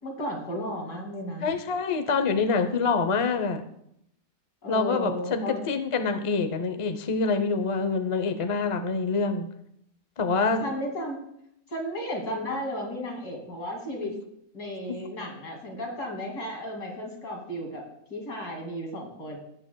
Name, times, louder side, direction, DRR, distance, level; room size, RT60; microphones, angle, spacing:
voice 1, 0.0-1.5 4.6-5.6 10.6-11.2 11.7-14.1 14.5-17.8 18.1-19.4, equal, 70° left, 0 dB, 3.0 m, -34 dB
voice 2, 1.4-3.6 4.7-9.5 10.2-10.7 14.9-15.0, left 4 dB, 40° left, 7 dB, 0.4 m, -26 dB
17.0 x 8.8 x 2.3 m, 0.75 s
omnidirectional pair, 1.7 m